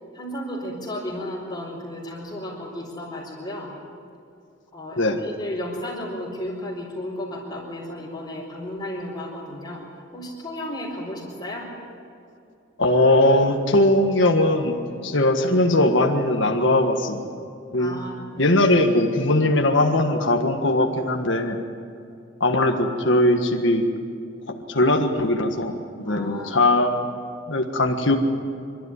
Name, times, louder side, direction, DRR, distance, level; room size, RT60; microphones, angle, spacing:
voice 1, 0.1-3.7 4.7-9.9 10.1-11.7 17.8-18.6 26.0-26.7, left 1 dB, 25° left, -7 dB, 4.5 m, -33 dB
voice 2, 12.8-17.3 17.7-18.0 18.4-21.6 22.4-23.8 24.7-27.0 27.5-28.2, left 1 dB, 70° left, 3 dB, 1.6 m, -20 dB
27.0 x 13.0 x 9.9 m, 2.5 s
head